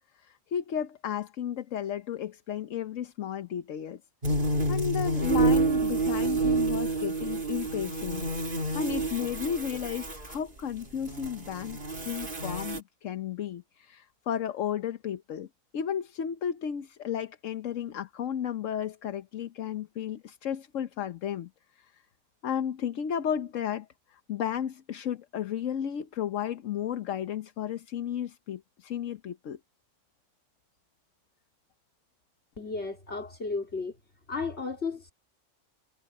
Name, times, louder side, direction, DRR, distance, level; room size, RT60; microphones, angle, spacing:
voice 1, 0.2-4.0 4.7-11.8 12.0-15.5 15.7-21.5 21.8-21.9 22.4-29.6, left 9 dB, 85° left, 1.2 m, -33 dB
sound 1, 4.2-10.3 10.9-12.8, right 3 dB, 45° right, 2.7 m, -28 dB
voice 2, 32.6-33.9 34.3-35.1, left 4 dB, 60° left, 3.7 m, -33 dB
omnidirectional pair, 1.3 m